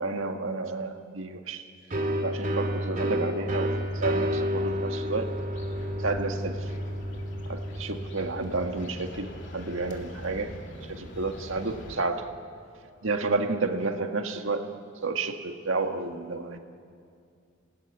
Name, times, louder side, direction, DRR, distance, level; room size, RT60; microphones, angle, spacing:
voice 1, 0.0-1.7 2.2-5.3 6.0-6.7 7.5-12.3 13.0-14.7 15.0-16.6, right 3 dB, 75° right, 5 dB, 1.8 m, -31 dB
sound 1, 1.9-9.4, equal, 40° right, 2.4 m, -31 dB
sound 2, 3.7-12.0, left 1 dB, 60° left, 2.7 m, -43 dB
28.0 x 18.5 x 9.7 m, 2.4 s
head